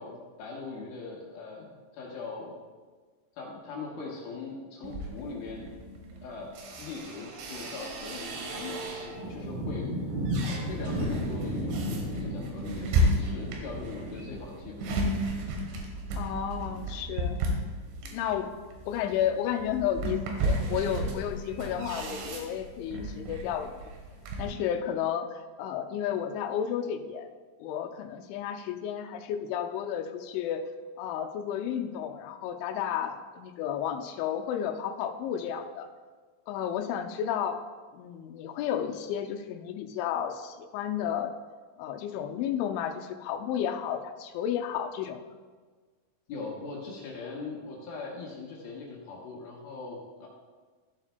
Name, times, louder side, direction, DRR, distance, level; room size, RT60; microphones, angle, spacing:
voice 1, 0.0-2.5 3.3-5.7 6.2-9.9 10.7-14.9 18.0-18.1 46.3-50.3, left 4 dB, 70° left, -3 dB, 2.5 m, -41 dB
sound 1, 4.8-9.3 9.8-24.5, right 1 dB, 85° right, 3.7 m, -33 dB
sound 2, 9.1-17.2 17.5-17.6 18.8-18.9 19.1-19.2 21.4-21.5 23.3-23.4, equal, 60° right, 3.0 m, -35 dB
voice 2, 16.1-17.4 18.1-18.5 18.9-23.8 24.4-27.3 27.6-30.6 31.0-35.9 36.5-37.6 37.9-41.3 41.8-45.2, left 9 dB, 85° left, 6 dB, 3.0 m, -32 dB
14.5 x 7.3 x 2.2 m, 1.5 s
omnidirectional pair, 5.3 m